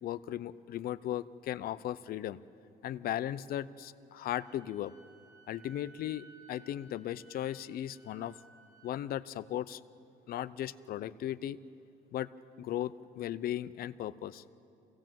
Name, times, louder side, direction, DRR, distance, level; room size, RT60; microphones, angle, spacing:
voice 1, 0.0-2.4 2.8-4.9 5.5-8.3 8.8-9.8 10.3-11.6 12.1-12.3 12.6-14.4, left 12 dB, 60° left, 14 dB, 0.6 m, -37 dB
Wind instrument woodwind instrument, 4.2-9.0, right 4 dB, 75° right, 3.8 m, -59 dB
25.5 x 17.0 x 7.6 m, 2.6 s
cardioid pair, 110°, 17 cm